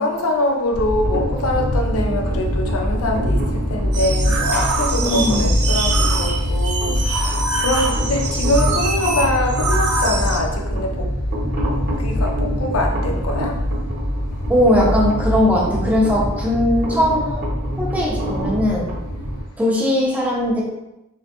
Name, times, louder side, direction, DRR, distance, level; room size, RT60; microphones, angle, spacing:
voice 1, 0.0-11.1 12.0-13.6, left 1 dB, 75° left, 1 dB, 0.5 m, -24 dB
sound 1, 0.7-19.4, equal, 50° right, 0.8 m, -23 dB
sound 2, 3.9-10.4, right 3 dB, 80° right, 0.5 m, -24 dB
voice 2, 5.0-5.5 14.5-17.4 17.8-18.9 19.6-20.6, left 1 dB, 5° right, -4 dB, 0.6 m, -19 dB
3.1 x 2.1 x 2.9 m, 0.93 s
head